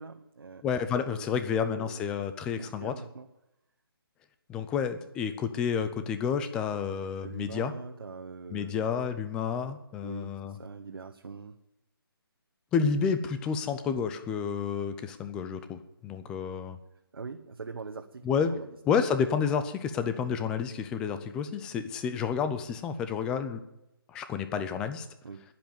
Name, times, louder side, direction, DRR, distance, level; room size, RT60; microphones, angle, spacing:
voice 1, 0.0-0.6 1.1-1.3 1.6-2.2 2.6-3.3 7.2-8.9 10.0-11.6 17.1-18.7 25.2-25.4, right 4 dB, 70° right, 4 dB, 1.3 m, -43 dB
voice 2, 0.6-2.9 4.5-7.7 8.5-10.5 12.7-16.8 18.2-18.5 18.9-23.6 24.1-25.1, left 6 dB, 5° left, 10 dB, 0.5 m, -30 dB
12.0 x 10.5 x 9.4 m, 0.87 s
hypercardioid pair, 165°, 13 cm